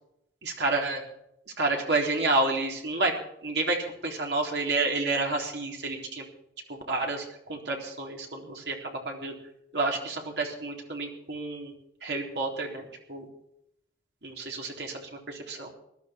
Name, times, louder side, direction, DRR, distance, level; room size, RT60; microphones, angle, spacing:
voice 1, 0.4-1.0 1.6-3.1 3.4-6.2 6.7-9.4 9.7-11.7 12.0-13.3 14.2-15.7, right 2 dB, 70° right, 0 dB, 3.9 m, -30 dB
20.5 x 12.5 x 4.6 m, 0.76 s
head